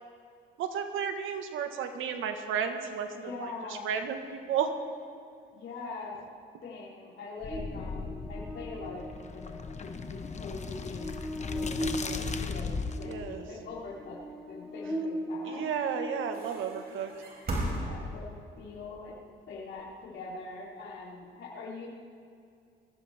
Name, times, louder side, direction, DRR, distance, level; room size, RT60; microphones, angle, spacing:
voice 1, 0.6-3.1 3.4-4.7 13.0-13.4 15.5-17.1, right 7 dB, 85° right, 7 dB, 1.5 m, -33 dB
voice 2, 3.1-3.9 5.5-6.2 6.6-9.4 9.7-12.7 13.0-14.2 14.5-15.7 17.6-19.1 19.5-21.9, left 3 dB, 65° left, -5 dB, 3.5 m, -43 dB
sound 1, 7.4-13.1, left 4 dB, 35° left, 1.2 m, -37 dB
Buzz, 7.5-16.9, equal, ahead, 4.7 m, -39 dB
sound 2, 16.3-18.5 19.7-21.1, right 1 dB, 50° right, 5.0 m, -36 dB
22.0 x 16.0 x 3.6 m, 2.4 s
cardioid pair, 90°, 20 cm